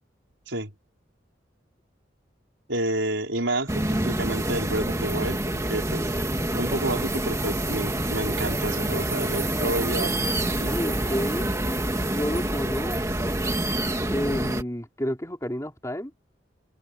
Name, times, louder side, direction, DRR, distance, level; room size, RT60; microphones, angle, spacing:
voice 1, 2.7-6.0 6.5-10.1 10.6-10.7, right 1 dB, 85° right, 5.1 m, -29 dB
sound 1, 3.7-14.6, right 1 dB, 15° right, 2.1 m, -27 dB
voice 2, 10.0-11.8 12.1-13.4 14.1-16.1, equal, 15° left, 4.5 m, -31 dB
head